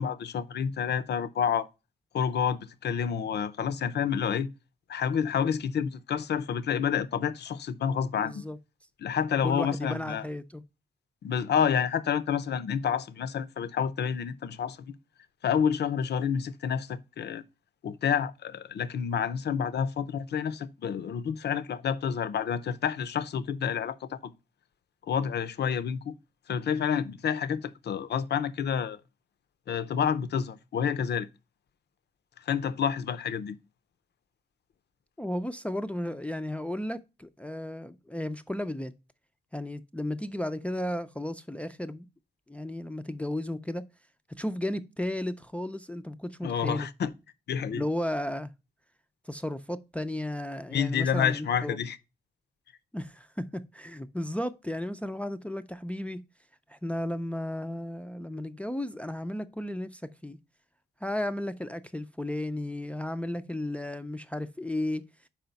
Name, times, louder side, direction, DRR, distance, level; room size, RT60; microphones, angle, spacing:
voice 1, 0.0-1.7 2.1-4.5 4.9-8.4 9.0-10.2 11.2-14.9 15.4-17.4 17.8-24.3 25.1-26.2 26.5-29.0 29.7-31.3 32.4-33.6 46.4-47.1 47.5-47.8 50.7-52.0, left 7 dB, 75° left, 0.6 m, -29 dB
voice 2, 8.1-8.6 9.4-10.6 35.2-38.9 39.5-42.1 42.5-43.9 44.4-46.9 47.7-48.5 49.3-51.8 52.9-56.2 56.7-60.4 61.0-65.0, left 1 dB, 5° left, 0.4 m, -34 dB
5.8 x 4.9 x 5.2 m
wide cardioid pair, 145°, 18 cm